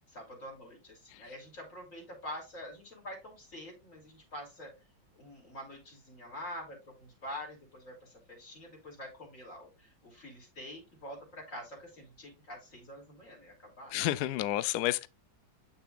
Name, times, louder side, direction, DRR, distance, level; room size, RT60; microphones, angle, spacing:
voice 1, 0.1-4.8 5.1-14.0, left 1 dB, 40° left, 3.4 m, -46 dB
voice 2, 13.9-15.1, left 15 dB, 75° left, 0.9 m, -30 dB
8.6 x 6.7 x 2.4 m
omnidirectional pair, 2.2 m